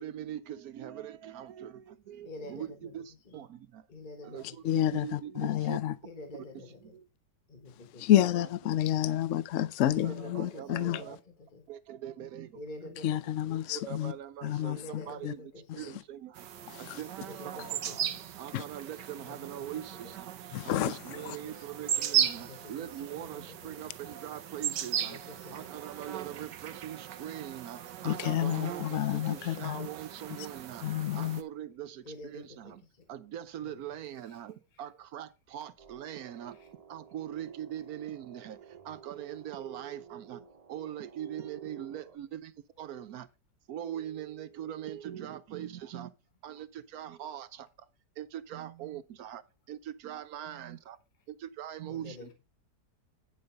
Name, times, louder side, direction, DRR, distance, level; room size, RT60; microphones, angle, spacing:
voice 1, 0.0-3.9 4.2-5.8 6.8-7.1 8.1-8.5 10.0-11.2 11.7-12.9 13.9-16.5 16.8-18.1 18.4-20.3 20.6-25.2 25.5-30.9 31.2-32.8 33.1-40.4 40.7-42.5 42.8-43.3 43.7-46.1 46.4-47.7 48.2-49.4 49.7-51.0 51.3-52.3, right 11 dB, 65° right, 1.1 m, -42 dB
voice 2, 2.2-3.4 3.9-5.0 6.0-7.0 7.5-8.3 9.7-11.6 12.5-13.6 14.7-16.0 17.3-18.2 18.9-20.2 20.7-21.7 22.3-23.9 24.9-25.8 30.3-30.4 31.1-31.2 32.0-32.7 33.6-34.0 34.2-34.4 34.7-34.9 35.5-35.7 36.1-36.7 42.7-42.8 46.9-47.0 51.6-52.3, left 2 dB, 30° left, 1.5 m, -49 dB
voice 3, 4.6-5.9 8.0-11.0 13.0-14.1 14.4-15.3 15.8-15.9 16.7-17.0 18.5-18.6 20.5-21.4 28.0-29.9 30.8-31.4, left 12 dB, 65° left, 0.8 m, -29 dB
sound 1, 16.4-31.4, right 10 dB, 85° right, 1.5 m, -37 dB
sound 2, 35.8-42.2, right 7 dB, 30° right, 0.7 m, -53 dB
10.5 x 5.5 x 5.2 m
omnidirectional pair, 1.8 m